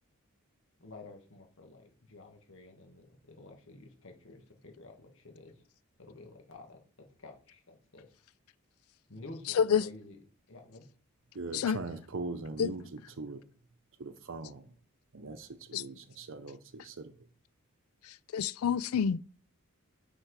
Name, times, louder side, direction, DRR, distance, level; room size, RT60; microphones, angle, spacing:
voice 1, 0.8-5.6 6.0-8.1 9.1-10.2 10.5-10.9, left 2 dB, 65° left, 1.6 m, -51 dB
voice 2, 11.3-13.4 14.0-14.7 15.1-17.3, right 3 dB, 65° right, 0.7 m, -41 dB
voice 3, 18.3-19.2, left 7 dB, 85° left, 0.4 m, -27 dB
6.5 x 4.4 x 4.7 m
head